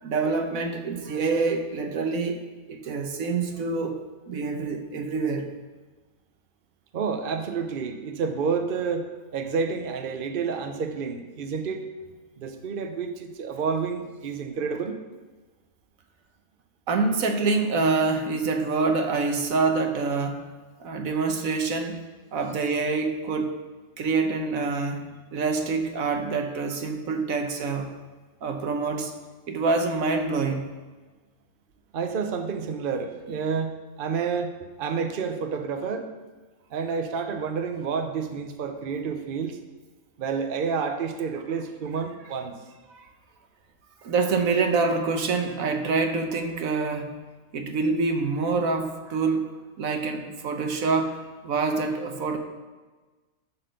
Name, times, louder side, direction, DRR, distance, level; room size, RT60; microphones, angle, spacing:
voice 1, 0.0-4.0 4.3-5.5 16.9-20.5 20.8-22.0 22.3-23.6 24.0-27.9 28.4-29.1 29.5-30.7 42.9-43.0 44.0-47.1 47.5-49.5 49.8-51.2 51.4-52.4, right 4 dB, 80° right, 5 dB, 1.3 m, -26 dB
voice 2, 6.9-9.1 9.3-11.9 12.4-15.0 31.9-34.5 34.8-36.1 36.7-39.6 40.2-42.6, right 5 dB, 45° right, 6 dB, 0.9 m, -29 dB
11.0 x 4.3 x 6.6 m, 1.3 s
omnidirectional pair, 1.4 m